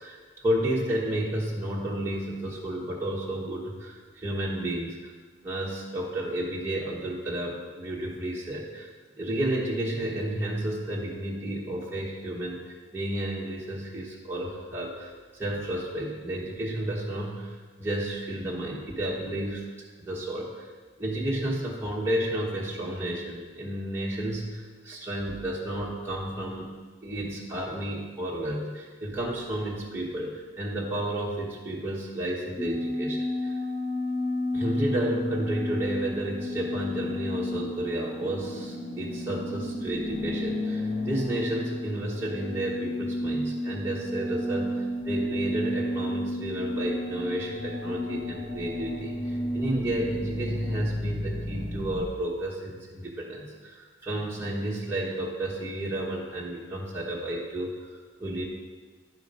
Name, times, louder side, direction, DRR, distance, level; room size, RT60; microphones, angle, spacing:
voice 1, 0.0-5.1 5.4-8.9 9.2-12.6 12.9-19.6 20.0-20.7 21.0-26.7 27.0-33.6 34.5-58.4, right 1 dB, 10° right, -5 dB, 1.2 m, -32 dB
sound 1, 32.6-52.1, left 1 dB, 20° left, 0.9 m, -32 dB
11.0 x 4.8 x 5.3 m, 1.4 s
head